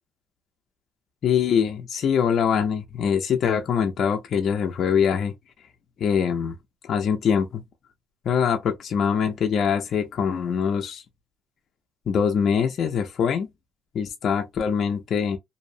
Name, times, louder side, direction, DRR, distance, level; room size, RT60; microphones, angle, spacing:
voice 1, 1.2-5.3 6.0-6.6 6.8-7.6 8.3-11.0 12.1-13.5 13.9-15.4, left 7 dB, 45° left, 0.5 m, -23 dB
2.6 x 2.0 x 2.6 m
cardioid pair, 155°, 0 cm